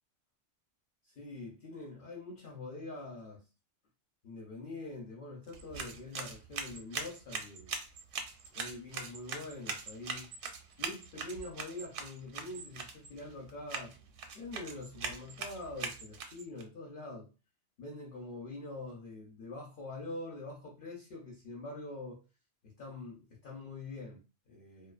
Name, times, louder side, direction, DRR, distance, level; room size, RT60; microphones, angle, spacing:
voice 1, 1.0-3.4 4.2-7.8 8.5-10.3 10.8-13.9 14.3-17.3 17.8-22.2 22.6-24.9, left 2 dB, 55° left, 0.8 m, -45 dB
sound 1, 5.4-16.6, right 5 dB, 85° right, 0.9 m, -42 dB
2.4 x 2.3 x 2.3 m
omnidirectional pair, 1.2 m